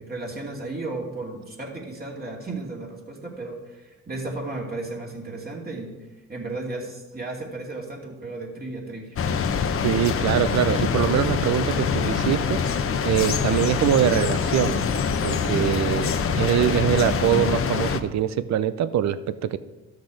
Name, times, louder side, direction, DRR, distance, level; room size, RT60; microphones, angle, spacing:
voice 1, 0.0-6.0 6.3-9.2 9.7-10.1 15.4-15.7, right 2 dB, 30° right, -1 dB, 2.4 m, -34 dB
sound 1, 9.2-18.0, left 6 dB, 45° left, 0.8 m, -24 dB
voice 2, 9.8-12.6 13.0-14.8 15.2-19.6, right 10 dB, 65° right, 14 dB, 0.6 m, -23 dB
12.5 x 6.5 x 4.9 m, 1.1 s
cardioid pair, 90°, 30 cm